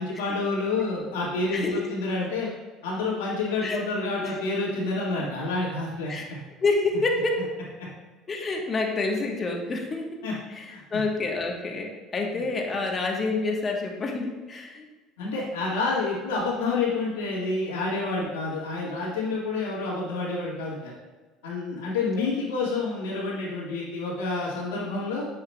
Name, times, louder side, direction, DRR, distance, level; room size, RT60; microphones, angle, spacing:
voice 1, 0.0-2.5 2.8-6.4 10.2-10.3 10.7-10.8 15.2-20.9 21.4-25.3, left 3 dB, 85° left, -5 dB, 1.8 m, -28 dB
voice 2, 6.6-7.5 8.3-10.1 10.5-14.9 22.2-22.3, left 3 dB, 35° left, 2 dB, 1.2 m, -28 dB
7.6 x 5.7 x 2.3 m, 1.3 s
hypercardioid pair, 80°, 0 cm